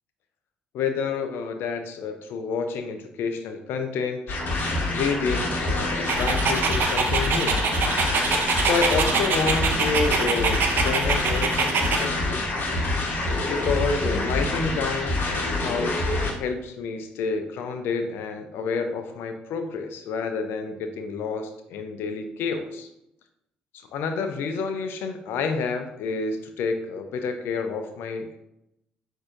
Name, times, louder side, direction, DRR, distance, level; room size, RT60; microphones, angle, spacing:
voice 1, 0.7-4.2 4.9-7.6 8.6-12.4 13.5-22.9 23.9-28.4, left 5 dB, 65° left, 7 dB, 0.4 m, -29 dB
sound 1, 4.3-16.3, left 2 dB, 50° left, 1.0 m, -26 dB
Dog, 6.1-12.1, right 5 dB, 55° right, 0.6 m, -25 dB
5.9 x 2.6 x 2.4 m, 0.82 s
hypercardioid pair, 50°, 4 cm